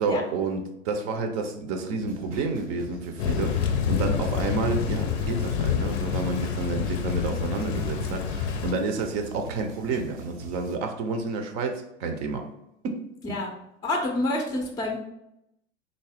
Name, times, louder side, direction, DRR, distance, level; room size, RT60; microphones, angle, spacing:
voice 1, 0.0-12.5 12.8-13.0, right 3 dB, 50° right, 5 dB, 0.6 m, -29 dB
sound 1, 2.0-10.8, right 4 dB, 80° right, 0.8 m, -43 dB
Thunder / Rain, 3.2-8.7, left 8 dB, 65° left, 0.5 m, -28 dB
voice 2, 13.8-15.0, left 1 dB, 10° left, 2 dB, 0.5 m, -27 dB
3.7 x 2.0 x 3.4 m, 0.82 s
hypercardioid pair, 80°, 35 cm